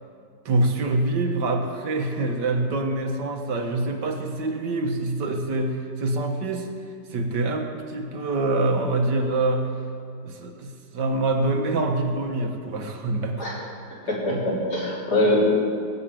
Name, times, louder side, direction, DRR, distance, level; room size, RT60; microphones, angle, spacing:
voice 1, 0.5-6.7 7.1-9.8 10.2-13.5 14.3-14.4, right 2 dB, 80° right, 4 dB, 2.0 m, -25 dB
voice 2, 13.9-15.5, left 1 dB, 65° left, -5 dB, 4.4 m, -23 dB
20.5 x 6.9 x 9.0 m, 2.3 s
omnidirectional pair, 1.8 m